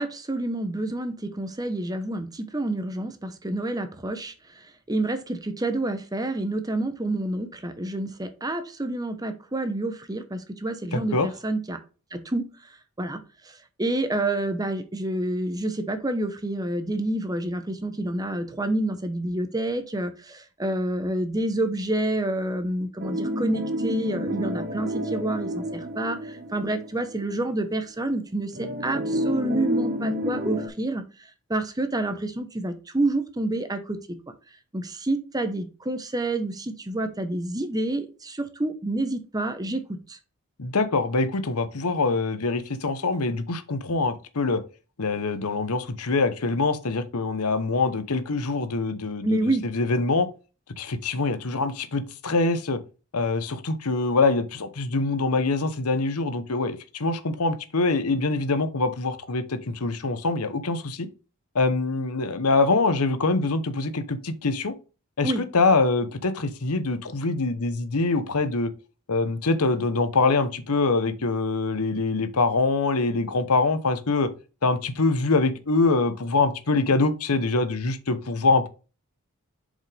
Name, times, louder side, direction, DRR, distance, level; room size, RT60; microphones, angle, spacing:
voice 1, 0.0-4.3 4.9-11.8 12.1-12.5 13.0-13.2 13.8-31.0 31.5-34.0 34.7-39.8 40.1-40.2 49.2-49.6 65.2-65.4, right 1 dB, 15° right, 0.9 m, -28 dB
voice 2, 10.9-11.3 40.6-44.6 45.0-50.3 50.8-52.8 53.1-61.1 61.5-64.7 65.2-68.7 69.1-74.3 74.6-78.7, left 3 dB, 85° left, 0.9 m, -24 dB
sound 1, 23.0-27.4 27.7-27.8 28.5-30.7, equal, 45° right, 1.0 m, -30 dB
7.3 x 5.3 x 3.4 m
head